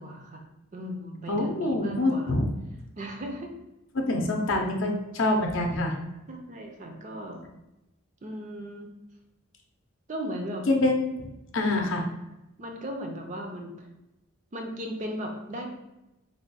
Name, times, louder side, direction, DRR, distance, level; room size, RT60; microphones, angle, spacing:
voice 1, 0.0-2.3 3.0-3.5 6.3-7.4 8.2-8.9 10.1-10.7 11.7-11.9 12.6-13.9 14.5-15.7, equal, 35° right, 3 dB, 0.5 m, -37 dB
voice 2, 1.3-2.5 3.9-6.0 10.7-11.3 11.5-12.0, left 2 dB, 60° left, 2 dB, 0.6 m, -25 dB
3.4 x 2.2 x 4.0 m, 0.94 s
head